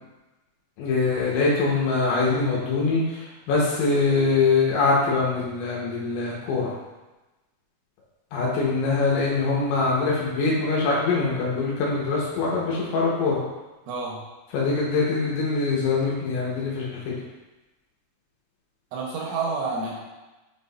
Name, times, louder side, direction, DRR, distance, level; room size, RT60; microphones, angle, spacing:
voice 1, 0.8-3.2 3.5-6.7 8.3-13.4 14.5-17.1, left 4 dB, 75° left, -5 dB, 3.4 m, -23 dB
voice 2, 13.9-14.2 18.9-20.0, right 4 dB, 75° right, -3 dB, 3.3 m, -29 dB
8.9 x 4.6 x 2.6 m, 1.1 s
omnidirectional pair, 5.8 m